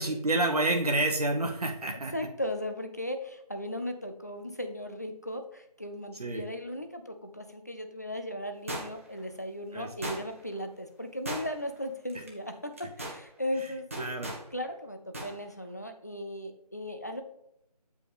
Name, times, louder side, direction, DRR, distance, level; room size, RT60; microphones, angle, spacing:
voice 1, 0.0-2.1 6.1-6.4 9.7-9.9 12.1-12.2 13.6-13.7 14.0-14.3, right 2 dB, 70° right, 3 dB, 1.1 m, -29 dB
voice 2, 2.1-14.1 14.5-17.2, left 1 dB, 25° left, 7 dB, 0.5 m, -37 dB
sound 1, 8.7-9.2 10.0-10.5 11.2-11.8 12.1-12.3 12.7-13.2 13.9-14.4 15.1-15.3 15.6-15.7, right 1 dB, 20° right, 0.9 m, -37 dB
8.4 x 5.2 x 3.3 m, 0.77 s
figure-of-eight pair, 165°, 21 cm